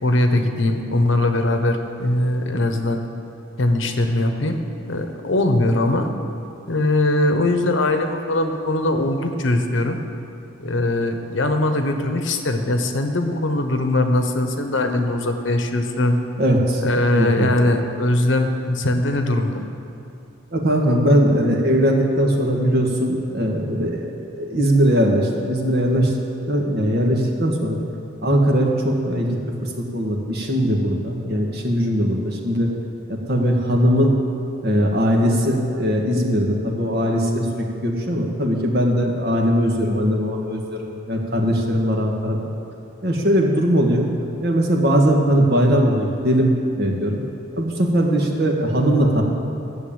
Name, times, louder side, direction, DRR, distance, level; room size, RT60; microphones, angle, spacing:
voice 1, 0.0-3.0 3.6-4.6 4.9-6.1 6.7-10.0 10.6-16.2 16.8-19.6, left 1 dB, 65° left, 6 dB, 1.0 m, -21 dB
voice 2, 16.4-16.8 17.1-17.5 20.5-26.1 26.5-27.8 28.2-29.3 29.6-32.7 33.1-34.1 34.6-42.4 43.0-44.1 44.4-47.2 47.5-49.2, equal, 50° right, 0 dB, 1.7 m, -20 dB
13.0 x 7.1 x 8.8 m, 2.6 s
head